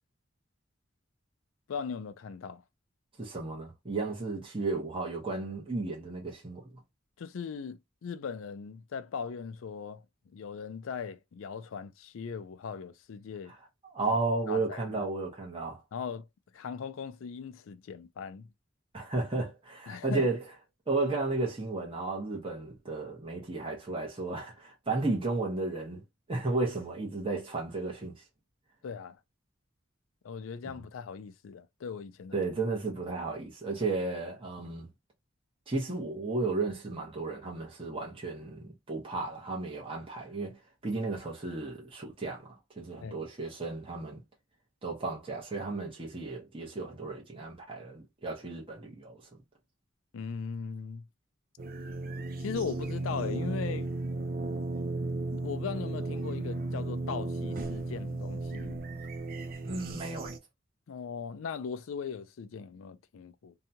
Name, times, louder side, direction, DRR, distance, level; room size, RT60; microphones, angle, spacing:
voice 1, 1.7-2.6 7.2-10.0 10.3-13.5 14.5-15.1 15.9-16.3 16.5-18.5 19.9-20.3 28.8-29.2 30.2-32.4 43.0-43.2 50.1-51.1 52.4-53.9 55.3-58.8 60.9-63.5, left 6 dB, 85° left, 0.4 m, -39 dB
voice 2, 3.2-6.8 13.5-13.6 13.8-15.8 18.9-20.4 20.9-26.0 26.3-28.1 30.6-30.7 32.3-34.9 35.7-42.5 42.8-44.2 44.8-49.2 59.6-60.3, right 3 dB, 25° right, 0.9 m, -33 dB
sound 1, 51.6-60.4, right 2 dB, 45° right, 0.4 m, -35 dB
2.7 x 2.3 x 2.7 m
head